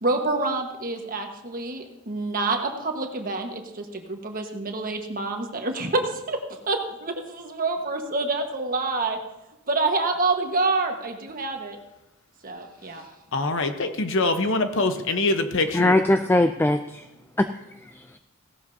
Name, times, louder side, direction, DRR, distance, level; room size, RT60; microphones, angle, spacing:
voice 1, 0.0-9.2 9.7-11.8 12.4-13.0, right 3 dB, 40° right, 3 dB, 1.4 m, -27 dB
voice 2, 13.3-15.9, left 2 dB, 65° left, 8 dB, 1.0 m, -24 dB
voice 3, 15.7-17.1 17.4-17.5 17.9-18.2, left 1 dB, 10° left, 9 dB, 0.3 m, -21 dB
16.5 x 12.0 x 2.8 m, 0.96 s
head